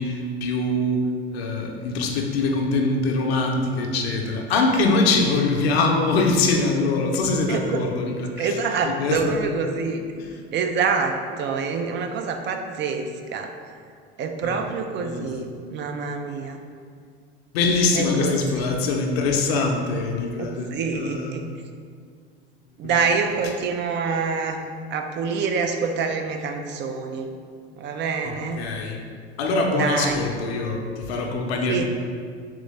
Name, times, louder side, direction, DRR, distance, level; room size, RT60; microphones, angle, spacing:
voice 1, 0.0-8.6 8.8-9.2 10.2-10.3 14.4-14.6 15.0-15.6 17.5-21.3 22.8-23.0 28.2-29.0 29.4-31.8, left 3 dB, 80° left, 2 dB, 0.6 m, -23 dB
voice 2, 7.5-7.8 8.4-10.0 10.5-13.5 14.2-16.6 17.9-18.7 19.5-19.7 20.4-21.5 22.8-24.6 24.9-27.3 27.8-28.6 29.8-30.3 31.7-31.8, right 5 dB, 35° right, 5 dB, 0.4 m, -26 dB
3.7 x 3.3 x 3.2 m, 2.1 s
hypercardioid pair, 80°, 31 cm